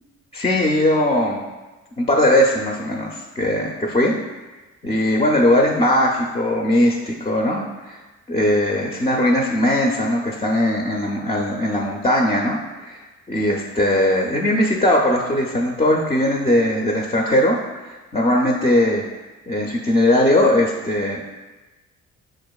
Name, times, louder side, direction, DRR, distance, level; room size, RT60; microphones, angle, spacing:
voice 1, 0.3-1.4 2.0-4.1 4.8-8.0 8.3-13.0 13.3-19.0 19.5-21.2, left 1 dB, 20° left, -1 dB, 0.4 m, -19 dB
6.5 x 2.5 x 2.3 m, 1.2 s
cardioid pair, 90°, 30 cm